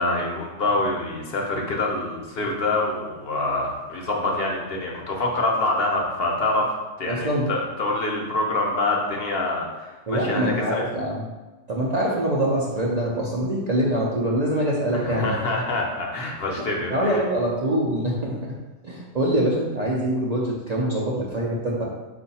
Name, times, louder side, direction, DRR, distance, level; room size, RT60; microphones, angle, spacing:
voice 1, 0.0-6.7 7.0-10.9 14.9-17.2, left 2 dB, 55° left, 0 dB, 0.9 m, -26 dB
voice 2, 7.1-7.5 10.1-11.3 11.7-15.3 16.6-16.7 16.9-18.3 18.8-21.8, right 1 dB, 50° right, -4 dB, 0.5 m, -24 dB
4.5 x 2.5 x 4.1 m, 1.2 s
omnidirectional pair, 1.3 m